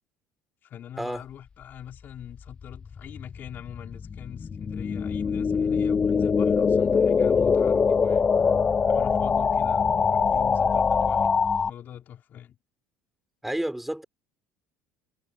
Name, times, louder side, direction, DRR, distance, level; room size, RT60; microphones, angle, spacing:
voice 1, 0.6-8.4 8.9-11.3 11.6-12.6, left 10 dB, 40° left, 4.7 m, -43 dB
sound 1, 2.4-11.7, left 5 dB, 20° left, 0.5 m, -23 dB
voice 2, 13.4-14.0, right 1 dB, 5° right, 4.0 m, -30 dB
cardioid pair, 150°, 5 cm